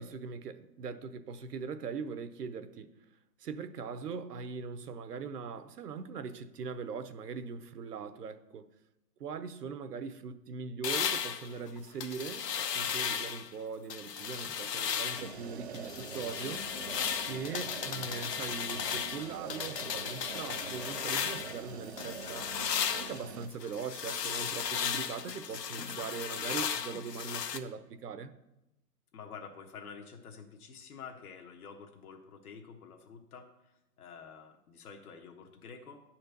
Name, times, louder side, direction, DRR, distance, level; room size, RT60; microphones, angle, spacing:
voice 1, 0.0-2.9 3.4-8.7 9.2-16.7 17.3-22.5 22.9-28.3, right 5 dB, 75° right, 0.9 m, -41 dB
sound 1, 10.8-13.5 13.9-15.4 15.7-21.6 22.0-27.6, left 8 dB, 80° left, 1.0 m, -35 dB
sound 2, 15.2-23.5, right 5 dB, 45° right, 0.4 m, -45 dB
voice 2, 29.1-36.0, left 6 dB, 65° left, 1.2 m, -49 dB
10.5 x 4.4 x 6.6 m
hypercardioid pair, 160°, 48 cm